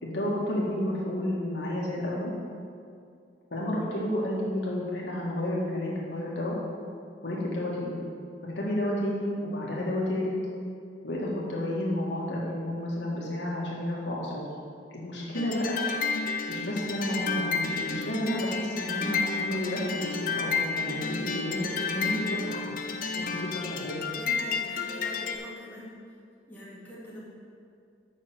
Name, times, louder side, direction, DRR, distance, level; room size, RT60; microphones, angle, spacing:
voice 1, 0.0-2.3 3.5-6.6 7.2-8.0 8.4-10.3 11.0-14.4 14.9-15.8 16.5-22.6 23.2-24.0, left 1 dB, 80° left, -5 dB, 1.9 m, -31 dB
sound 1, 15.3-25.4, left 5 dB, 50° left, 0.6 m, -31 dB
voice 2, 24.1-25.9 26.5-27.2, left 1 dB, 10° left, -8 dB, 2.2 m, -43 dB
6.6 x 6.1 x 7.2 m, 2.4 s
head